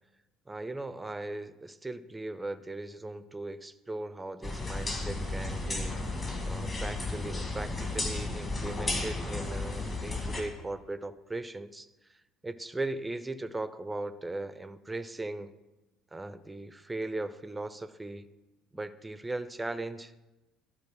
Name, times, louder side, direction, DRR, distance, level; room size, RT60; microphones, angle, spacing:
voice 1, 0.5-6.0 6.4-12.2 12.4-15.5 16.1-18.3 18.7-20.1, right 2 dB, 10° right, 14 dB, 0.5 m, -38 dB
sound 1, 4.4-10.4, left 2 dB, 25° left, 1.9 m, -33 dB
12.0 x 4.1 x 5.9 m, 1.1 s
figure-of-eight pair, 55°, 0 cm